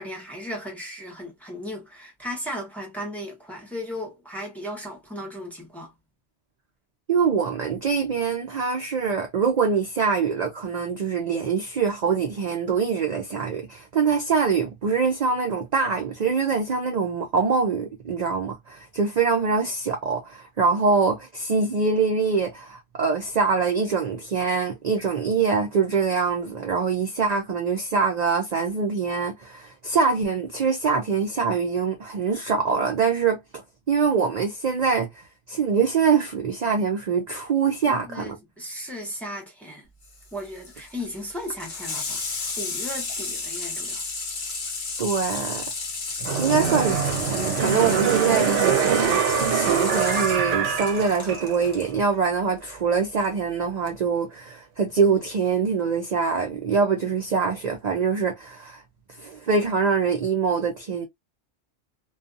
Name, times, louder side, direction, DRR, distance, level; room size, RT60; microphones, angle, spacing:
voice 1, 0.0-5.9 37.9-39.9 40.3-44.0 46.5-46.8, left 1 dB, ahead, 0.8 m, -36 dB
voice 2, 7.1-33.4 33.9-35.1 35.5-38.3 45.0-45.6 46.4-47.0 47.3-58.8 59.2-61.0, right 5 dB, 55° right, 0.5 m, -24 dB
Water tap faucet / Sink (filling or washing), 40.0-51.9 53.2-53.3, left 4 dB, 45° left, 0.9 m, -32 dB
sound 1, 46.2-51.8 52.1-52.2, right 7 dB, 75° right, 0.9 m, -24 dB
2.5 x 2.3 x 2.5 m
omnidirectional pair, 1.3 m